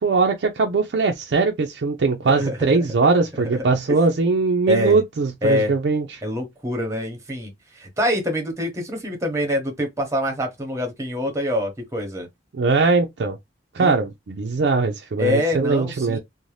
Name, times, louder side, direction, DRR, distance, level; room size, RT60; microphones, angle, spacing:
voice 1, 0.0-6.2 12.5-13.4 13.7-16.2, right 4 dB, 70° right, 0.4 m, -21 dB
voice 2, 2.3-2.8 3.3-3.6 3.9-4.0 4.7-5.0 5.4-5.7 6.2-12.3 13.8-13.9 15.2-16.2, left 1 dB, 15° right, 0.9 m, -25 dB
2.6 x 2.1 x 3.1 m
head